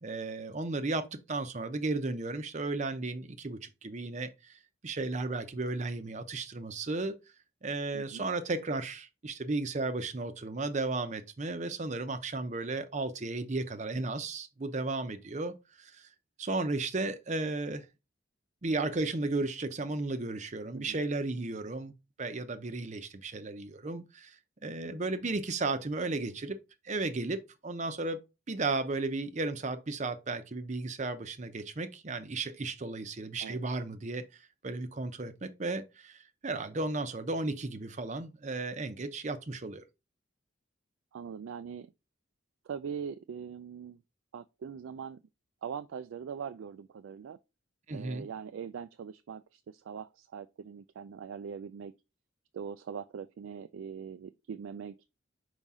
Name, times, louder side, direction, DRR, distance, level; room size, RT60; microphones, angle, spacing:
voice 1, 0.0-7.2 7.6-16.1 16.4-17.9 18.6-21.9 22.2-24.4 24.6-26.6 26.8-34.3 34.6-39.8 47.9-48.3, right 3 dB, 35° right, 0.6 m, -34 dB
voice 2, 41.1-41.9 42.7-44.0 44.3-45.2 45.6-47.4 47.9-51.9 52.5-55.0, right 7 dB, 80° right, 0.3 m, -42 dB
5.6 x 5.0 x 3.6 m
head